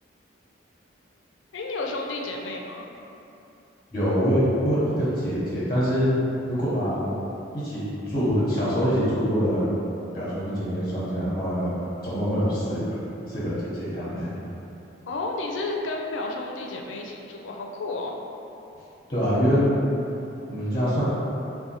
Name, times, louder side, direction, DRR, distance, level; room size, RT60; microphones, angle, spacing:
voice 1, 1.5-2.8 15.1-18.1, left 2 dB, 80° left, 1 dB, 0.4 m, -31 dB
voice 2, 3.9-6.1 6.5-7.0 7.5-9.7 10.1-11.8 12.0-12.8 13.3-14.3 19.1-19.6 20.5-21.1, equal, 25° left, -9 dB, 0.8 m, -25 dB
3.8 x 2.2 x 4.2 m, 2.9 s
head